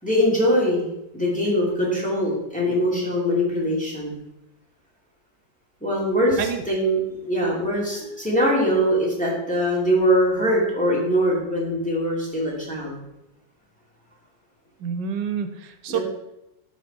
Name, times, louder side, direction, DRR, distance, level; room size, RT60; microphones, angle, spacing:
voice 1, 0.0-4.2 5.8-12.9 15.9-16.0, equal, 5° left, -6 dB, 2.8 m, -22 dB
voice 2, 14.8-16.0, right 7 dB, 90° right, 9 dB, 1.5 m, -27 dB
12.5 x 4.9 x 4.3 m, 0.89 s
omnidirectional pair, 1.9 m